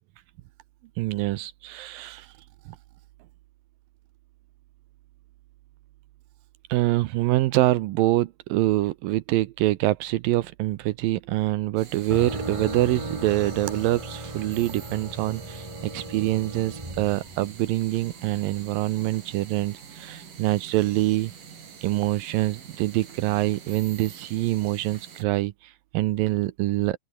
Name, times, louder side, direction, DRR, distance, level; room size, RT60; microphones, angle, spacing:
voice 1, 1.0-2.3 6.7-21.3 21.8-27.0, right 17 dB, 80° right, 2.3 m, -25 dB
sound 1, 11.8-25.2, right 7 dB, 60° right, 5.0 m, -45 dB
sound 2, 12.1-18.0, right 1 dB, 10° right, 2.8 m, -36 dB
open air
omnidirectional pair, 4.4 m